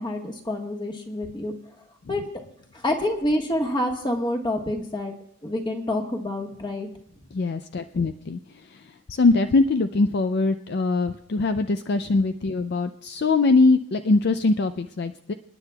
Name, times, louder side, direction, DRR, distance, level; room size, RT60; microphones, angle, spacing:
voice 1, 0.0-1.5 2.1-2.2 2.7-5.1 5.4-6.9, left 1 dB, 20° left, 3 dB, 1.4 m, -27 dB
voice 2, 7.3-8.4 9.1-15.3, left 3 dB, 50° left, 9 dB, 0.4 m, -22 dB
27.0 x 9.9 x 2.3 m, 0.74 s
head